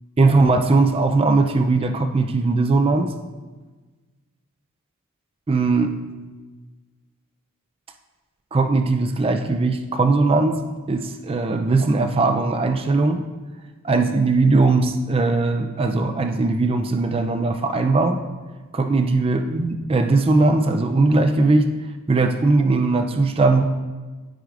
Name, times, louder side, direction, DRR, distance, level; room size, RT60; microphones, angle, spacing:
voice 1, 0.2-3.1 5.5-5.9 8.5-10.6 10.9-13.2 13.8-18.2 18.7-21.7 22.1-23.6, right 3 dB, 25° right, 6 dB, 0.4 m, -19 dB
12.5 x 4.9 x 2.5 m, 1.3 s
head